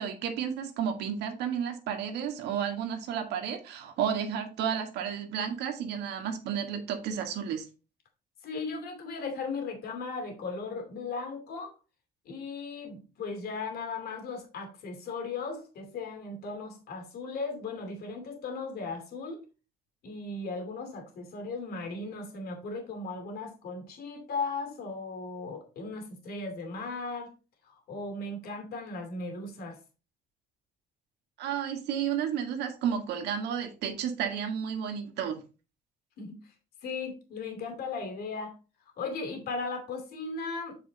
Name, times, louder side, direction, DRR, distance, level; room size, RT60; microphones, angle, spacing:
voice 1, 0.0-7.6 31.4-35.4, right 8 dB, 80° right, 1.8 m, -32 dB
voice 2, 8.4-11.7 12.3-19.4 20.0-27.3 27.7-29.8 36.2-36.3 36.8-38.5 39.0-40.8, left 3 dB, 70° left, 2.6 m, -37 dB
7.9 x 4.9 x 3.9 m
cardioid pair, 110°, 17 cm